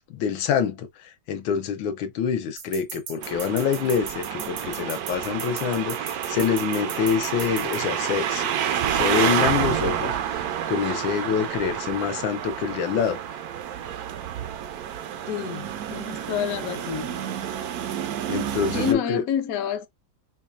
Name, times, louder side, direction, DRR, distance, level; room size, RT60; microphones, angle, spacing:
voice 1, 0.1-8.5 8.9-13.2 18.3-19.2, left 7 dB, 80° left, 1.5 m, -26 dB
sound 1, 2.6-7.8, right 7 dB, 85° right, 1.7 m, -37 dB
sound 2, 3.2-18.9, right 9 dB, 70° right, 0.9 m, -29 dB
voice 2, 15.3-17.2 18.7-19.9, left 8 dB, 60° left, 1.0 m, -28 dB
5.2 x 2.3 x 2.4 m
omnidirectional pair, 2.1 m